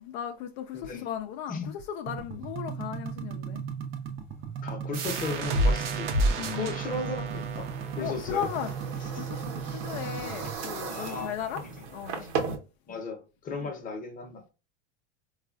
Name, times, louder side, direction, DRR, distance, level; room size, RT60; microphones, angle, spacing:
voice 1, 0.0-3.6 6.4-6.7 7.0-7.1 8.0-11.6 11.9-12.3 13.6-13.7, left 9 dB, 70° left, 0.5 m, -36 dB
voice 2, 0.7-1.1 1.5-1.7 4.6-6.1 6.5-7.7 8.0-8.4 9.1-9.3 10.4-10.5 10.9-11.7 12.2-12.3 12.9-14.4, left 3 dB, 25° left, 0.8 m, -36 dB
sound 1, 2.1-10.6, right 7 dB, 35° right, 0.5 m, -37 dB
sound 2, 4.9-10.3, right 1 dB, 90° right, 0.7 m, -31 dB
sound 3, 7.3-12.5, right 5 dB, 65° right, 0.9 m, -37 dB
3.8 x 2.4 x 2.3 m
supercardioid pair, 105°, 34 cm